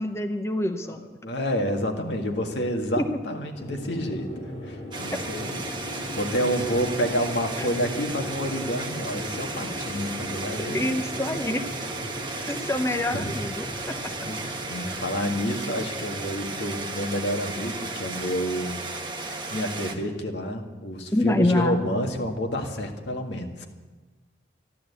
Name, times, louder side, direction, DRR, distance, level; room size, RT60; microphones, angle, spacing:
voice 1, 0.0-1.1 3.0-3.1 7.6-7.7 10.7-11.6 12.5-13.9 21.1-21.8, left 1 dB, 15° left, 5 dB, 0.7 m, -26 dB
voice 2, 0.8-4.3 4.6-10.9 12.0-12.5 13.1-13.4 13.7-13.8 14.2-18.8 19.2-23.7, equal, 80° left, 4 dB, 1.8 m, -29 dB
sound 1, 3.5-18.4, left 1 dB, 35° left, 4.7 m, -39 dB
sound 2, 4.9-19.9, right 3 dB, 25° right, 1.3 m, -34 dB
13.5 x 12.0 x 8.2 m, 1.3 s
head